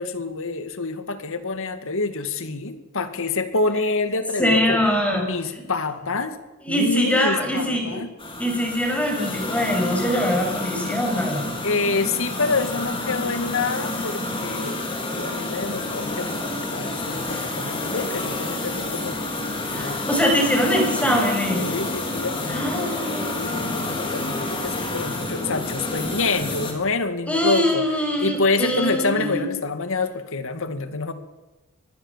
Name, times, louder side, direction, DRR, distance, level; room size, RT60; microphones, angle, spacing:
voice 1, 0.0-4.8 5.1-6.4 6.7-8.1 11.6-19.2 19.7-20.0 21.5-23.0 23.3-27.9 28.2-31.1, left 3 dB, 65° left, 9 dB, 2.2 m, -27 dB
voice 2, 4.4-5.2 6.6-8.0 8.4-11.5 19.7-21.7 22.5-23.3 27.3-29.4, equal, 5° left, 2 dB, 6.7 m, -23 dB
sound 1, 8.2-26.7, left 2 dB, 25° left, 4.4 m, -29 dB
25.0 x 20.5 x 7.5 m, 1.1 s
head